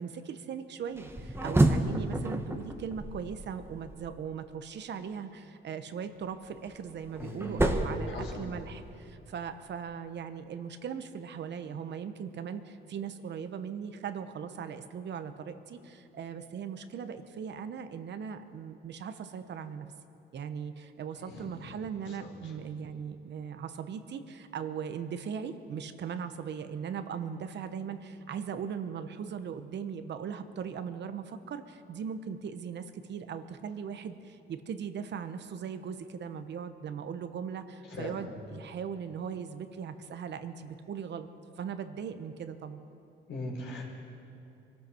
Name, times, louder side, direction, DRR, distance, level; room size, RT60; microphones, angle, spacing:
voice 1, 0.0-19.9 20.3-41.3 41.6-42.8, right 7 dB, 60° right, 9 dB, 1.0 m, -39 dB
sound 1, 1.0-4.1 6.3-8.9, right 1 dB, 10° right, 1.2 m, -30 dB
voice 2, 7.2-7.7 8.1-8.4 21.3-21.6 22.1-22.3 37.9-38.1 43.3-43.8, left 2 dB, 70° left, -2 dB, 4.3 m, -40 dB
23.5 x 13.0 x 4.4 m, 2.7 s
cardioid pair, 90°, 20 cm